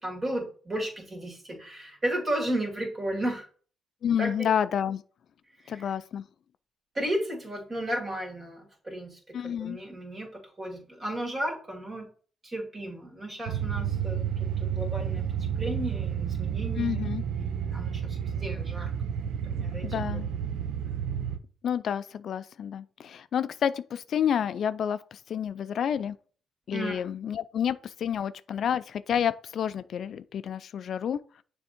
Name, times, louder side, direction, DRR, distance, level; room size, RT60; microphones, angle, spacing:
voice 1, 0.0-3.5 4.2-4.5 5.6-5.9 6.9-12.1 12.4-15.3 15.6-18.9 19.3-20.2 26.7-27.0, right 1 dB, 30° right, 2.6 m, -34 dB
voice 2, 4.0-5.0 5.7-6.2 9.3-9.8 16.8-17.2 19.8-20.3 21.6-26.2 26.7-31.4, left 8 dB, 60° left, 0.3 m, -29 dB
sound 1, 13.5-21.4, right 8 dB, 85° right, 0.6 m, -31 dB
7.0 x 3.5 x 4.3 m
cardioid pair, 90°, 0 cm